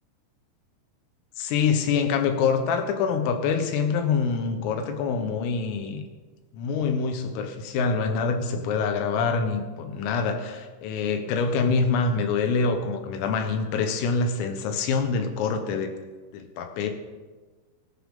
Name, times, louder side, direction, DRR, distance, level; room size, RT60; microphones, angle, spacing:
voice 1, 1.4-6.0 6.5-15.9 16.3-16.9, left 5 dB, 80° left, 6 dB, 4.0 m, -25 dB
23.0 x 11.0 x 3.9 m, 1.3 s
omnidirectional pair, 5.8 m